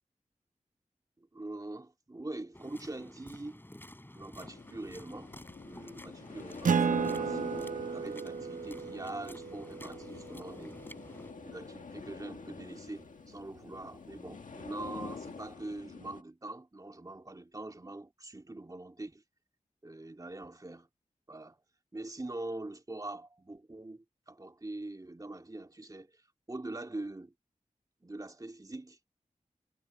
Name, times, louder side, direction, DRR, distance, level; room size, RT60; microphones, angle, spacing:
voice 1, 1.2-3.6 4.1-5.3 5.6-10.8 11.5-19.2 19.8-20.9 21.3-21.6 21.9-27.3 28.0-29.0, right 2 dB, 30° right, 2.2 m, -43 dB
sound 1, 2.5-11.3, left 1 dB, 15° left, 5.0 m, -52 dB
sound 2, 4.4-16.2, left 5 dB, 90° left, 1.7 m, -47 dB
Acoustic guitar, 6.6-11.6, right 6 dB, 85° right, 0.6 m, -34 dB
wide cardioid pair, 55°, 13 cm